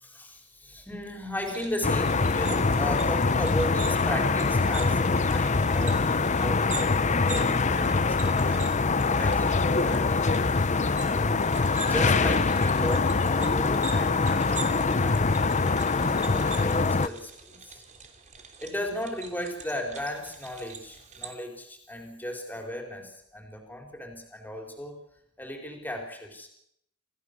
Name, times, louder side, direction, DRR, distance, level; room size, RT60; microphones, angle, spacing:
voice 1, 0.0-8.7 9.2-10.5 11.1-11.5 11.9-17.8 18.6-25.0 25.4-26.5, left 1 dB, 10° left, 2 dB, 4.6 m, -36 dB
sound 1, 1.4-21.3, right 6 dB, 35° right, 3.0 m, -44 dB
sound 2, 1.8-17.1, left 4 dB, 35° left, 0.8 m, -24 dB
27.5 x 16.5 x 6.9 m, 0.73 s
head